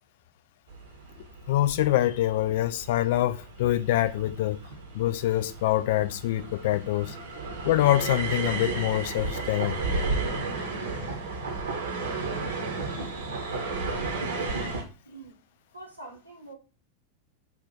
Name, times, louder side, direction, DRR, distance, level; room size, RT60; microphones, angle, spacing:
sound 1, 0.7-14.8, right 3 dB, 65° right, 1.0 m, -33 dB
voice 1, 1.5-4.6 4.9-7.2 7.6-9.8, left 13 dB, 55° left, 0.3 m, -25 dB
voice 2, 15.0-15.4 15.7-16.5, right 2 dB, 85° right, 1.2 m, -44 dB
4.0 x 2.5 x 3.7 m
figure-of-eight pair, 90°, 0 cm